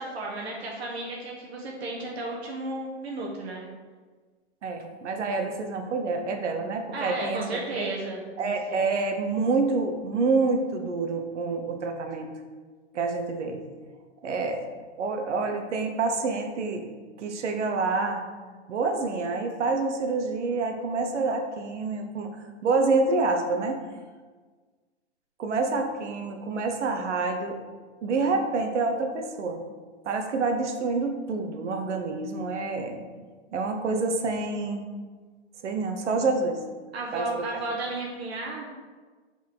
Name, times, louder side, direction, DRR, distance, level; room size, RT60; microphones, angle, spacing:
voice 1, 0.0-3.6 6.9-8.5 36.9-38.7, right 2 dB, 65° right, -2 dB, 1.3 m, -33 dB
voice 2, 4.6-7.4 7.7-7.9 8.4-12.4 12.9-13.6 14.2-14.7 15.0-16.9 17.2-18.2 18.7-22.3 22.6-23.8 25.4-27.6 28.0-29.6 30.0-33.0 33.5-34.8 35.6-36.7 37.1-37.5, right 3 dB, 90° right, 5 dB, 1.1 m, -27 dB
6.0 x 4.3 x 4.7 m, 1.4 s
hypercardioid pair, 170°, 34 cm